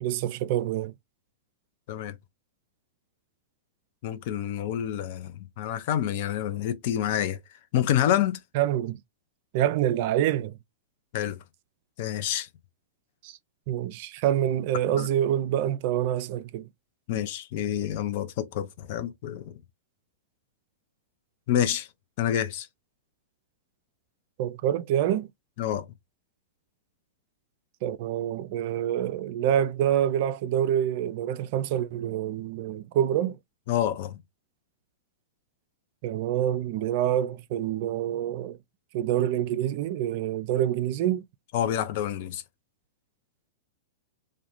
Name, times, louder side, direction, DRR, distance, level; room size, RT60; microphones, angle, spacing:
voice 1, 0.0-0.9 8.5-9.0 9.5-10.6 13.2-13.4 13.7-16.7 24.4-25.3 27.8-33.4 36.0-38.6 38.9-41.2, right 11 dB, 55° right, 0.3 m, -26 dB
voice 2, 4.0-7.4 7.7-8.4 11.1-11.4 12.0-12.5 15.0-15.1 17.1-19.5 21.5-21.9 22.2-22.7 25.6-25.8 33.7-34.2 41.5-42.4, left 11 dB, 55° left, 0.4 m, -28 dB
2.3 x 2.2 x 2.9 m
hypercardioid pair, 110°, 0 cm